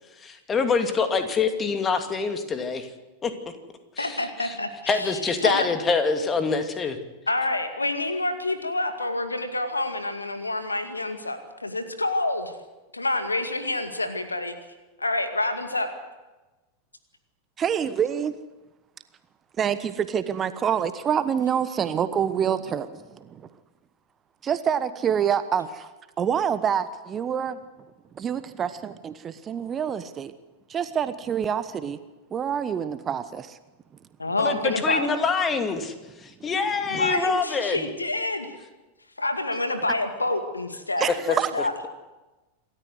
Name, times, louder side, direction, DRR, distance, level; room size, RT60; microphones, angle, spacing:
voice 1, 0.2-2.9 3.2-3.3 4.0-4.5 4.9-7.0 34.4-35.9 36.4-37.9, left 4 dB, 20° left, 7 dB, 2.6 m, -25 dB
voice 2, 4.0-5.7 7.3-12.6 12.9-14.5 15.0-15.9 34.2-35.1 36.9-38.6 39.2-41.7, left 2 dB, 80° left, 8 dB, 2.2 m, -28 dB
voice 3, 17.6-18.4 19.6-23.4 24.4-25.9 26.2-27.6 28.2-30.3 30.7-32.0 32.3-33.6 36.9-37.0 41.0-41.5, right 8 dB, 25° right, 12 dB, 1.1 m, -26 dB
27.5 x 13.5 x 8.0 m, 1.1 s
figure-of-eight pair, 90°, 0 cm